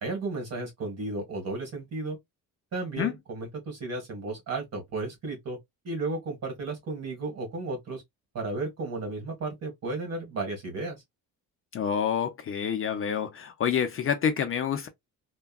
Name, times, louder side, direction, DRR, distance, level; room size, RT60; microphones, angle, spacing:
voice 1, 0.0-2.2 2.7-5.6 5.8-8.0 8.3-11.0, right 3 dB, 45° right, 1.8 m, -34 dB
voice 2, 11.7-14.9, left 8 dB, 40° left, 0.5 m, -28 dB
3.4 x 2.2 x 2.3 m
cardioid pair, 140°, 36 cm